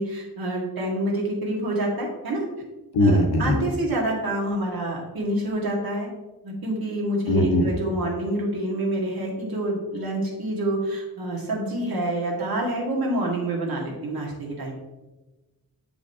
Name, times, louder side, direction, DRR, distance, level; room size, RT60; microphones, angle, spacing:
voice 1, 0.0-2.4 3.0-6.1 6.4-14.7, right 1 dB, 70° right, -2 dB, 1.6 m, -27 dB
voice 2, 2.9-3.6 7.3-7.6, left 1 dB, 80° left, 4 dB, 0.9 m, -19 dB
7.1 x 5.1 x 2.7 m, 1.1 s
wide cardioid pair, 155°, 38 cm